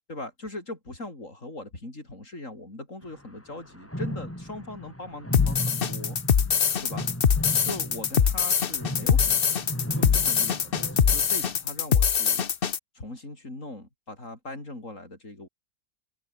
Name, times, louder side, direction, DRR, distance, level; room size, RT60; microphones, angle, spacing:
voice 1, 0.1-6.2 6.8-7.1 7.6-12.4 12.9-15.5, left 2 dB, 60° left, 6.3 m, -40 dB
sound 1, 3.0-3.2 3.5-11.7, equal, 10° left, 7.2 m, -36 dB
sound 2, 5.3-12.8, left 7 dB, 45° left, 1.1 m, -23 dB
omnidirectional pair, 1.5 m